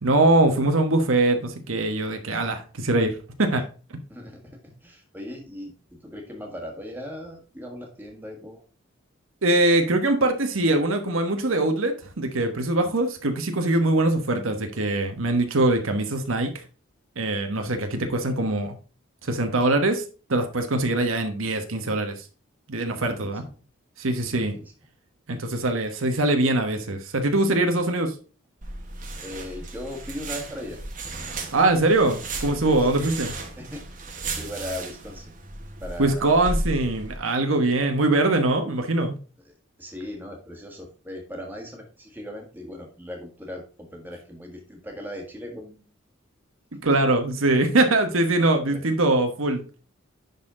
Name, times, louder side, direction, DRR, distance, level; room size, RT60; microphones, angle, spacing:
voice 1, 0.0-3.1 3.4-3.6 3.9-4.0 9.4-16.5 17.2-18.8 19.3-20.0 20.3-22.1 22.7-23.4 24.0-24.5 25.3-28.1 31.5-33.3 36.0-39.2 46.7-49.6, right 2 dB, 80° right, 6 dB, 1.2 m, -22 dB
voice 2, 4.1-8.6 22.9-23.6 24.3-24.7 29.2-30.8 32.0-32.2 32.9-33.1 33.6-33.8 34.3-35.3 35.8-36.4 37.8-37.9 39.4-45.8 46.8-47.1 48.7-48.8, left 1 dB, 10° right, 1 dB, 1.6 m, -38 dB
sound 1, 28.6-37.2, right 2 dB, 40° right, 1.2 m, -34 dB
10.5 x 4.2 x 3.7 m, 0.36 s
head